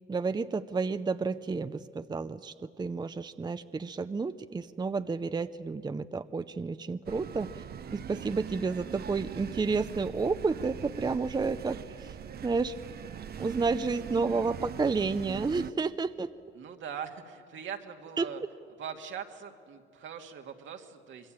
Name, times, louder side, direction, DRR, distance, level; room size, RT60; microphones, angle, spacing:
voice 1, 0.1-7.6 7.9-12.1 12.4-12.7 13.4-16.3 18.2-18.3, right 4 dB, 20° right, 11 dB, 0.6 m, -31 dB
sound 1, 7.1-15.7, right 8 dB, 50° right, 0.8 m, -41 dB
voice 2, 16.5-18.4 18.8-21.3, right 7 dB, 70° right, 4 dB, 2.1 m, -41 dB
25.5 x 22.0 x 8.8 m, 2.4 s
cardioid pair, 90°, 20 cm